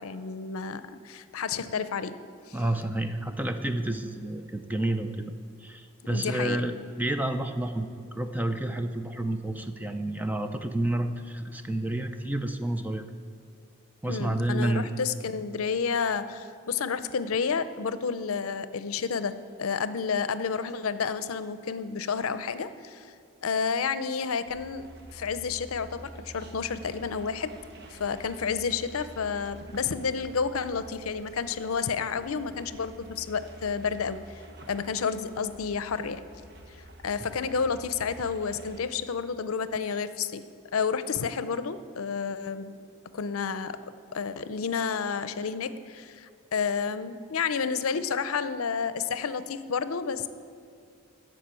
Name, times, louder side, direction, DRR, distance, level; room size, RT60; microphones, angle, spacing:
voice 1, 0.0-2.2 2.5-2.6 6.0-6.6 14.1-23.1 23.4-27.5 27.9-34.2 34.7-36.2 37.0-40.4 40.7-42.7 43.1-43.8 44.1-50.3, left 5 dB, 90° left, 13 dB, 0.6 m, -30 dB
voice 2, 2.5-5.3 5.6-6.7 7.0-13.0 14.0-15.0, right 1 dB, 10° right, 7 dB, 0.5 m, -30 dB
sound 1, 24.5-38.8, right 1 dB, 50° right, 1.1 m, -48 dB
13.0 x 5.0 x 8.8 m, 2.3 s
head